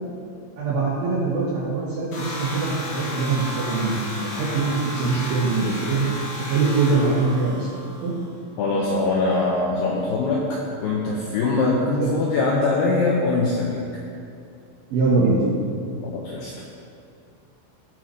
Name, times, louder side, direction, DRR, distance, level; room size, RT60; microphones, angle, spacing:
voice 1, 0.6-6.0 6.5-8.1 12.0-12.1 14.9-15.4, right 3 dB, 70° right, -7 dB, 2.3 m, -23 dB
sound 1, 2.1-8.3, left 1 dB, 70° left, 1.7 m, -33 dB
voice 2, 8.6-13.8 16.0-16.5, left 3 dB, 85° left, -4 dB, 2.4 m, -22 dB
17.0 x 5.8 x 3.1 m, 2.6 s
omnidirectional pair, 5.8 m